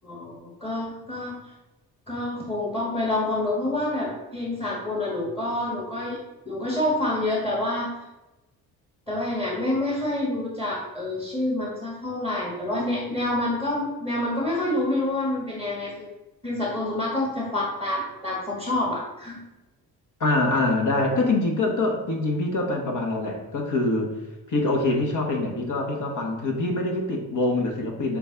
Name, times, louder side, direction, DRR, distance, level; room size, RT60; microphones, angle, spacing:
voice 1, 0.0-1.3 2.1-6.2 6.4-7.9 9.1-16.1 16.4-19.4, left 1 dB, 10° left, -4 dB, 1.3 m, -27 dB
voice 2, 20.2-24.1 24.5-28.2, left 2 dB, 40° left, 1 dB, 1.1 m, -24 dB
6.0 x 2.3 x 3.7 m, 1.0 s
hypercardioid pair, 45°, 46 cm